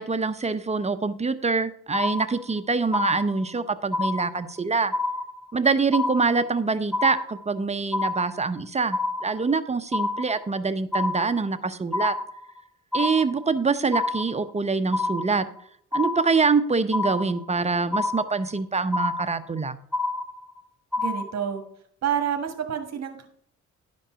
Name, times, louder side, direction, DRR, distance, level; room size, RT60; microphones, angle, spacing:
voice 1, 0.0-4.9 5.5-12.2 12.9-15.5 15.9-19.8, right 4 dB, 20° right, 11 dB, 0.7 m, -25 dB
sound 1, 1.9-2.6 2.9-3.6 3.9-4.6 4.9-5.6 5.9-6.6 6.9-7.6 7.9-8.6 8.9-9.6 9.9-10.6 10.9-11.6 11.9-12.6 12.9-13.6 13.9-14.6 14.9-15.6 15.9-16.6 16.9-17.6 17.9-18.6 18.9-19.6 19.9-20.6 20.9-21.6, left 3 dB, ahead, 1.3 m, -28 dB
voice 2, 21.0-21.6 22.0-23.3, right 8 dB, 60° right, 5 dB, 1.4 m, -28 dB
11.0 x 5.3 x 5.7 m, 0.64 s
cardioid pair, 90°, 30 cm